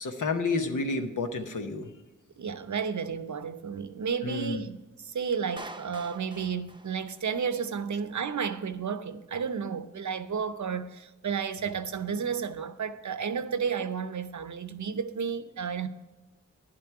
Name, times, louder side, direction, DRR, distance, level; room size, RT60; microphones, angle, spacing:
voice 1, 0.0-1.9 4.2-4.6, left 3 dB, 90° left, 1.0 m, -30 dB
voice 2, 2.4-15.9, right 6 dB, 70° right, 0.7 m, -32 dB
Clapping, 5.6-7.6, right 2 dB, 15° right, 0.7 m, -46 dB
10.5 x 7.6 x 4.7 m
cardioid pair, 50°, 30 cm